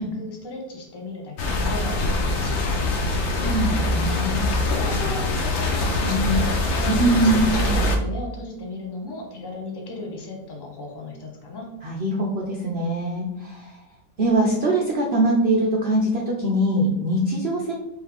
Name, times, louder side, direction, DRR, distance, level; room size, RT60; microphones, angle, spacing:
voice 1, 0.0-3.1 4.2-11.7, left 2 dB, 40° left, 0 dB, 0.3 m, -36 dB
sound 1, 1.4-8.0, left 2 dB, 70° left, 0.6 m, -23 dB
voice 2, 3.4-4.5 6.0-6.4 6.9-7.7 11.8-13.8 14.2-17.7, right 1 dB, 65° right, -2 dB, 0.6 m, -22 dB
4.8 x 3.2 x 3.4 m, 0.93 s
omnidirectional pair, 1.9 m